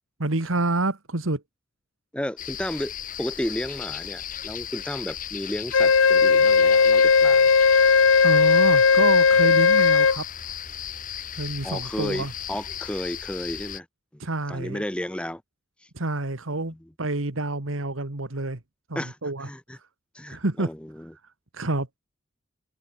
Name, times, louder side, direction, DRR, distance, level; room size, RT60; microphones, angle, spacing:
voice 1, 0.2-1.4 8.2-10.3 11.3-12.3 14.2-14.8 15.9-18.6 18.9-19.5 20.3-20.7 21.5-21.9, right 2 dB, 85° right, 1.9 m, -28 dB
voice 2, 2.1-2.9 3.2-7.5 11.6-13.9 14.5-15.4 16.6-16.8 19.0-19.8 20.1-21.1, left 1 dB, 5° left, 0.6 m, -33 dB
sound 1, 2.4-13.8, left 10 dB, 40° left, 3.4 m, -36 dB
Wind instrument woodwind instrument, 5.7-10.2, left 5 dB, 85° left, 0.8 m, -17 dB
head